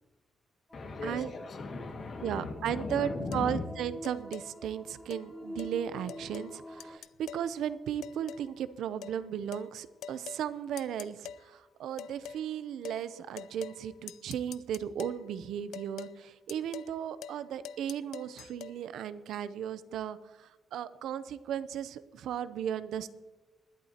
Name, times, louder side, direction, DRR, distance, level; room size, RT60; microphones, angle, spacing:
voice 1, 0.7-3.6, left 3 dB, 50° left, 3 dB, 1.9 m, -38 dB
sound 1, 0.7-7.0, left 1 dB, ahead, 0.6 m, -47 dB
voice 2, 2.2-23.1, right 9 dB, 85° right, 14 dB, 0.6 m, -36 dB
sound 2, 3.3-3.5 4.0-4.5 5.1-5.2 5.6-5.7 6.1-6.5 6.8-7.5 8.0-8.5 9.0-9.2 9.5-9.7 10.0-10.4 10.8-11.4 12.0-12.4 12.8-13.0 13.4-13.8 14.1-15.2 15.7-16.1 16.5-16.9 17.2-17.4 17.6-18.7, left 9 dB, 90° left, 0.4 m, -44 dB
20.5 x 11.0 x 2.9 m, 1.1 s
cardioid pair, 135°, 0 cm